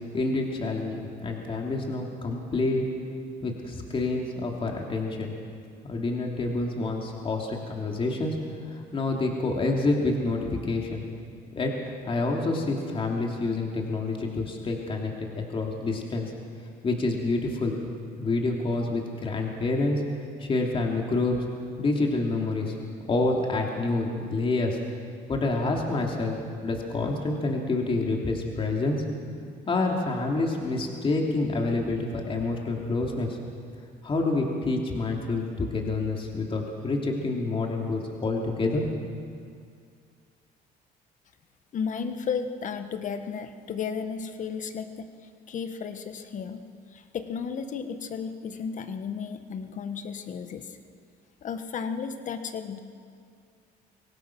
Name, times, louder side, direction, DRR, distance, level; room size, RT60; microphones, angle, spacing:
voice 1, 0.1-2.8 3.4-5.3 5.8-8.3 8.6-11.0 11.6-11.7 12.1-16.3 16.8-17.8 18.2-20.0 20.4-21.4 21.8-22.7 23.1-24.8 25.3-26.3 26.6-29.0 29.7-33.4 34.0-39.0, left 3 dB, 30° left, 0 dB, 2.9 m, -27 dB
voice 2, 41.7-45.1 45.5-46.6 46.9-50.8 51.4-52.8, left 6 dB, 50° left, 8 dB, 1.4 m, -33 dB
24.5 x 18.0 x 6.1 m, 2.2 s
cardioid pair, 110°, 17 cm